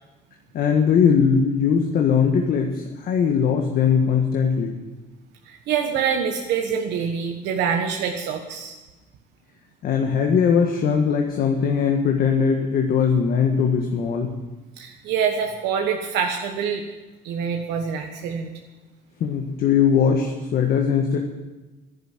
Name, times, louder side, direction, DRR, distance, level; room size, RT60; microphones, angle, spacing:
voice 1, 0.5-4.8 9.8-14.3 19.2-21.2, left 6 dB, 65° left, 2 dB, 1.6 m, -20 dB
voice 2, 5.4-8.8 14.8-16.8 17.2-18.5, right 7 dB, 85° right, 2 dB, 1.3 m, -25 dB
11.0 x 11.0 x 9.1 m, 1.2 s
cardioid pair, 110°, 17 cm